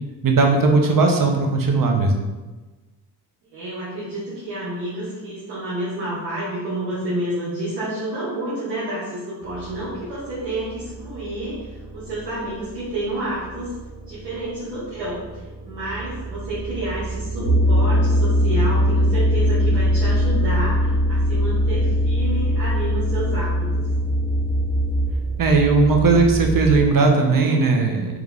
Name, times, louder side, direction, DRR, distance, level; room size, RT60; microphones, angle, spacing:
voice 1, 0.2-2.2 25.4-28.2, right 3 dB, 50° right, 3 dB, 0.9 m, -17 dB
voice 2, 3.5-13.7 14.1-23.9, right 1 dB, 85° right, -11 dB, 1.4 m, -29 dB
sound 1, 9.4-26.8, right 3 dB, 15° right, 0.8 m, -31 dB
sound 2, 17.4-25.1, equal, 35° left, 1.3 m, -20 dB
3.6 x 3.4 x 3.4 m, 1.2 s
supercardioid pair, 50°, 42 cm